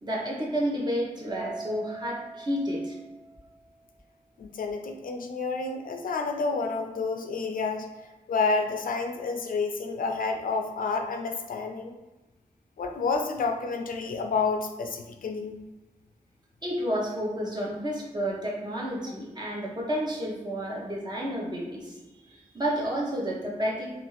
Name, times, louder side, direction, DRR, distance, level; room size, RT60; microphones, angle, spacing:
voice 1, 0.0-3.0 16.6-22.0 22.3-23.9, equal, 30° right, -3 dB, 0.8 m, -30 dB
Mallet percussion, 1.3-3.7, right 3 dB, 65° right, 0.9 m, -42 dB
voice 2, 4.4-7.9 8.3-11.9 12.8-15.6, left 4 dB, 80° left, 4 dB, 0.4 m, -29 dB
2.5 x 2.4 x 3.0 m, 1.1 s
wide cardioid pair, 90°, 14 cm